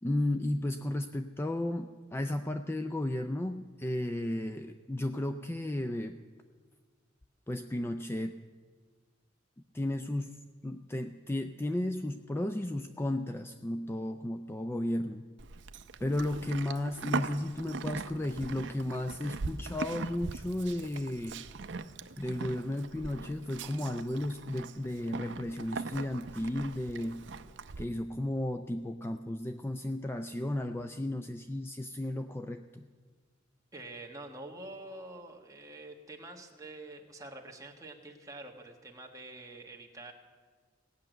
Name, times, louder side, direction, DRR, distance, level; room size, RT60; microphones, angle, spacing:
voice 1, 0.0-6.2 7.5-8.4 9.7-15.3 16.0-21.5 22.2-27.2 27.8-32.9, left 1 dB, 10° left, 7 dB, 0.4 m, -34 dB
Livestock farm animals working animals, 15.4-27.8, right 4 dB, 70° right, 0.6 m, -41 dB
voice 2, 33.7-40.1, right 2 dB, 20° right, 1 dB, 1.4 m, -46 dB
17.0 x 6.6 x 9.0 m, 1.5 s
head